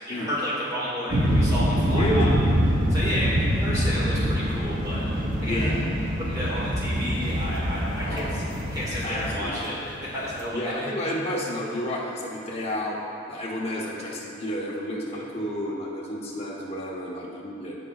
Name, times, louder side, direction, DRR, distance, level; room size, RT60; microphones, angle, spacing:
voice 1, 0.1-2.4 2.9-5.7 6.2-8.4 8.7-10.9, equal, 20° right, -8 dB, 1.9 m, -31 dB
sound 1, 1.1-10.5, equal, 45° right, 0.9 m, -25 dB
voice 2, 1.9-2.3 5.4-5.9 8.1-8.4 9.0-9.6 10.5-13.0 13.3-17.8, equal, 30° left, -4 dB, 1.1 m, -31 dB
15.0 x 5.4 x 2.4 m, 2.6 s
head